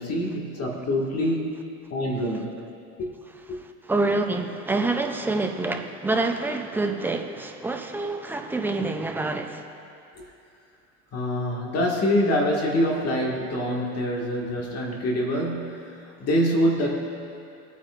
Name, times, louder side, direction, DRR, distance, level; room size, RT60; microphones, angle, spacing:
voice 1, 0.0-1.5 1.9-2.6 3.0-3.1 3.5-3.6 11.1-15.9 16.2-16.9, equal, 35° left, -1 dB, 1.7 m, -25 dB
voice 2, 3.9-9.7, right 2 dB, 5° right, 4 dB, 0.4 m, -27 dB
23.0 x 9.2 x 2.4 m, 2.5 s
supercardioid pair, 130°, 45 cm